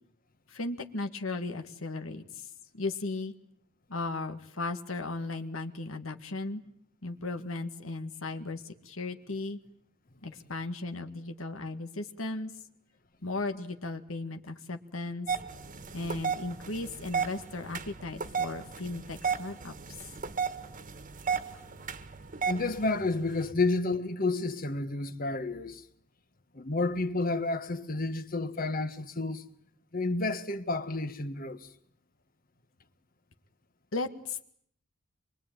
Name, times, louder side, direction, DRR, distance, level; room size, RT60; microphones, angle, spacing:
voice 1, 0.5-3.3 3.9-6.6 7.0-9.6 10.2-12.5 13.2-15.3 15.9-19.7 33.9-34.4, left 3 dB, 85° left, 1.9 m, -36 dB
sound 1, 15.3-23.5, right 6 dB, 40° right, 1.6 m, -35 dB
voice 2, 22.4-25.8 26.5-29.4 29.9-31.7, left 2 dB, 45° left, 1.4 m, -30 dB
25.0 x 23.0 x 9.1 m
head